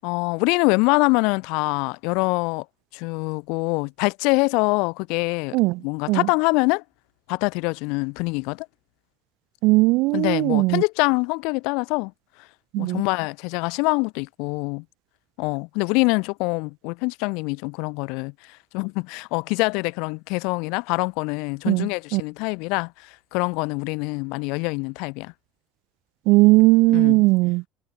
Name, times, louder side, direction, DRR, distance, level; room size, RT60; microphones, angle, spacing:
voice 1, 0.0-2.6 2.9-5.6 5.8-6.8 7.3-8.7 10.1-12.1 12.8-14.8 15.4-18.3 18.7-25.3 26.9-27.2, left 30 dB, 75° left, 6.5 m, -24 dB
voice 2, 9.6-10.8 12.7-13.0 21.7-22.2 26.3-27.6, right 23 dB, 65° right, 1.8 m, -18 dB
cardioid pair, 180°, 0 cm